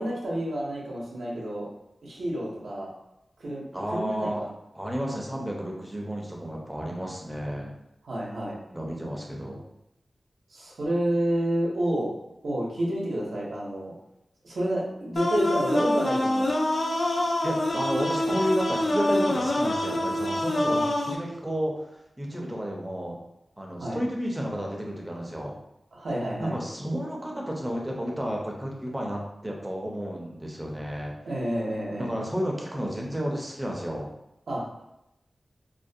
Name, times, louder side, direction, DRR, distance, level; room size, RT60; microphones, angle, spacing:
voice 1, 0.0-1.7 2.0-2.9 3.4-4.4 7.3-7.4 8.0-8.6 10.5-12.1 12.4-13.9 14.4-16.5 20.6-20.9 23.8-24.0 25.9-26.6 31.2-32.1 34.5-34.6, right 1 dB, 90° right, -4 dB, 0.6 m, -29 dB
voice 2, 3.7-4.4 4.7-7.7 8.7-9.6 17.4-20.8 21.1-21.9 22.2-23.2 23.6-25.6 26.4-31.1 32.0-34.1, equal, 10° right, -1 dB, 0.5 m, -31 dB
sound 1, 15.2-21.2, left 1 dB, 55° left, 0.3 m, -25 dB
2.4 x 2.1 x 2.6 m, 0.87 s
wide cardioid pair, 95°, 0 cm